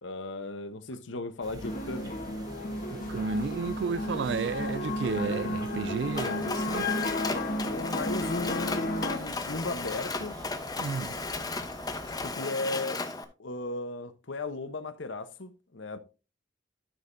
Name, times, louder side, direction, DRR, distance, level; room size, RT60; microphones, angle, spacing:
voice 1, 0.0-2.2 7.7-10.4 12.2-13.0 13.4-16.0, left 2 dB, 75° left, 1.0 m, -36 dB
sound 1, 1.4-12.4, right 1 dB, 20° right, 1.3 m, -46 dB
sound 2, 1.6-9.2, left 1 dB, 45° left, 1.3 m, -33 dB
voice 2, 2.9-6.9 10.8-11.2, right 5 dB, 60° right, 0.3 m, -32 dB
Mechanisms, 6.1-13.2, left 3 dB, 20° left, 0.8 m, -35 dB
13.0 x 6.4 x 2.7 m
head